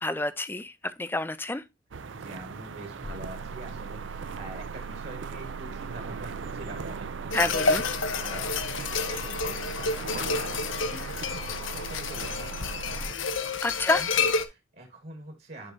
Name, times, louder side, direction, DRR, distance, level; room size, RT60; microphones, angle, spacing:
voice 1, 0.0-0.7 1.0-1.6 7.3-7.8 13.6-14.0, left 2 dB, 10° left, 0.4 m, -28 dB
voice 2, 1.9-13.0 13.9-15.7, right 1 dB, 50° right, 1.7 m, -45 dB
sound 1, 1.9-13.2, right 5 dB, 70° right, 0.5 m, -40 dB
sound 2, 3.0-13.0, right 5 dB, 40° left, 0.9 m, -42 dB
sound 3, 7.3-14.4, left 4 dB, 75° left, 0.8 m, -29 dB
10.0 x 4.9 x 2.7 m
head